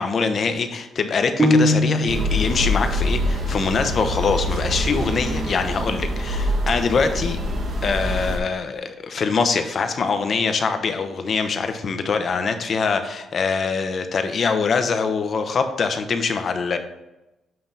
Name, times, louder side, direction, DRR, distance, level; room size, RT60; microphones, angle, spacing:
voice 1, 0.0-7.4 7.8-16.8, left 5 dB, 50° left, 7 dB, 0.7 m, -23 dB
sound 1, 1.4-2.4, equal, 15° right, 0.9 m, -19 dB
sound 2, 2.1-8.4, equal, 50° right, 1.3 m, -25 dB
7.6 x 2.9 x 5.2 m, 0.96 s
cardioid pair, 90°, 0 cm